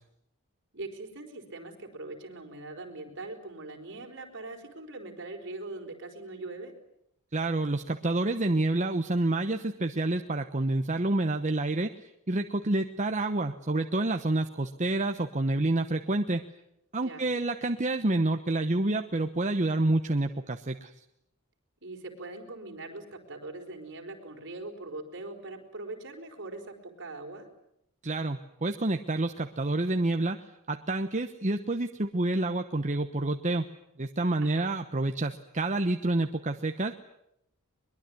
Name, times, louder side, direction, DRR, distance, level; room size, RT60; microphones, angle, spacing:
voice 1, 0.7-6.7 17.0-17.3 21.8-27.5 34.4-34.8, right 2 dB, 55° right, 3 dB, 4.7 m, -42 dB
voice 2, 7.3-16.4 16.9-20.9 28.0-33.7 34.0-36.9, right 2 dB, 35° right, 7 dB, 1.0 m, -28 dB
22.5 x 22.5 x 9.7 m, 0.78 s
head